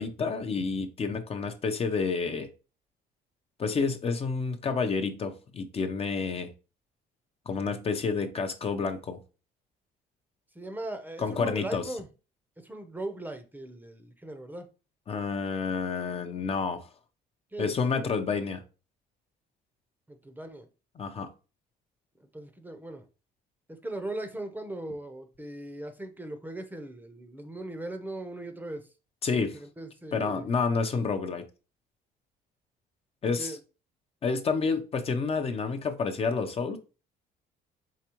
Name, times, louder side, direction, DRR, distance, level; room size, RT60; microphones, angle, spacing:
voice 1, 0.0-2.5 3.6-6.5 7.5-9.2 11.2-11.8 15.1-16.9 17.6-18.6 21.0-21.3 29.2-29.6 30.1-31.4 33.2-33.6 34.2-36.8, left 5 dB, 35° left, 0.6 m, -29 dB
voice 2, 10.5-12.1 12.6-14.7 17.5-18.1 20.1-20.7 22.3-23.1 23.7-28.9 29.3-30.5 33.4-33.6, right 1 dB, 10° right, 0.7 m, -39 dB
4.8 x 3.4 x 3.0 m
cardioid pair, 110°, 17 cm